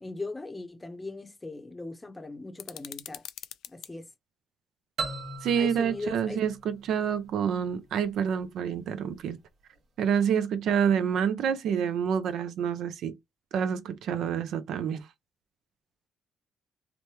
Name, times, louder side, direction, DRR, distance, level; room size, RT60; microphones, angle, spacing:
voice 1, 0.0-3.2 3.7-4.1 5.6-6.4, left 2 dB, 15° left, 0.7 m, -39 dB
sound 1, 2.6-3.9, left 11 dB, 85° left, 0.3 m, -43 dB
sound 2, 5.0-7.7, right 3 dB, 60° right, 0.9 m, -38 dB
voice 2, 5.4-9.4 10.0-13.2 13.5-15.1, right 8 dB, 75° right, 0.5 m, -28 dB
3.0 x 2.1 x 3.2 m
cardioid pair, 90°, 0 cm